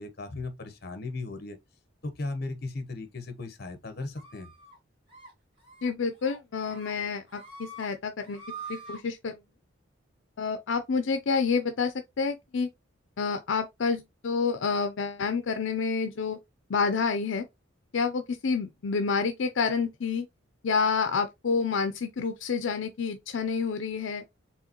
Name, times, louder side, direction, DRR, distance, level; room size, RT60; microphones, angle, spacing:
voice 1, 0.0-1.6 2.0-4.5, left 2 dB, 55° left, 0.9 m, -36 dB
sound 1, 4.2-4.7 5.1-5.3 5.6-5.9 6.2-6.9 7.3-7.9 8.2-9.0, right 3 dB, 25° right, 2.8 m, -44 dB
voice 2, 5.8-8.4 8.7-9.4 10.4-12.7 13.2-16.4 16.7-17.4 17.9-20.3 20.6-24.2, left 5 dB, 75° left, 0.5 m, -28 dB
4.7 x 3.6 x 2.9 m
head